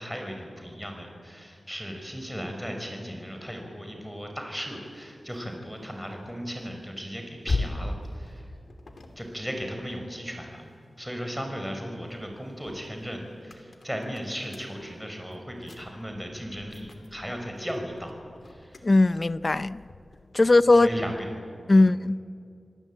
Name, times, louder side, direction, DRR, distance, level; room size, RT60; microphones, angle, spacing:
voice 1, 0.0-8.5 9.2-10.6 11.0-18.2 18.4-18.8 20.7-21.3 21.7-21.9, equal, ahead, 5.7 m, -36 dB
sound 1, 4.6-11.1 11.6-21.4, left 2 dB, 60° left, 3.0 m, -40 dB
voice 2, 18.8-19.8 20.3-20.9 21.7-22.2, left 2 dB, 40° left, 0.6 m, -19 dB
27.5 x 19.0 x 9.0 m
wide cardioid pair, 95°, 0 cm